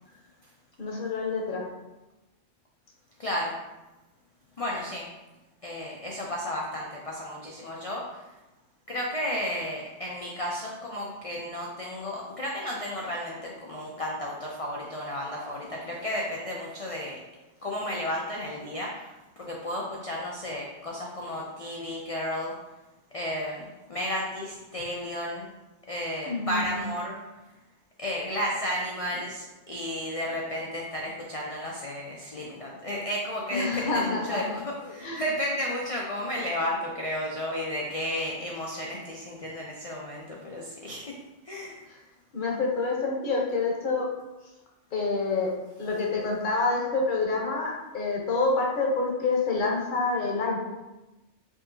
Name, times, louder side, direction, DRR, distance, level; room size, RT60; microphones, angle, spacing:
voice 1, 0.8-1.7 26.2-26.9 33.5-35.2 41.9-42.0 42.3-44.1 44.9-45.5 45.8-50.6, left 3 dB, 45° left, -2 dB, 0.9 m, -27 dB
voice 2, 3.2-3.6 4.6-5.1 5.6-8.2 8.9-17.2 17.6-22.5 23.1-25.5 25.9-27.2 28.0-41.2 41.4-41.8, left 1 dB, 65° left, -2 dB, 0.3 m, -33 dB
4.7 x 2.8 x 2.6 m, 1.1 s
omnidirectional pair, 1.2 m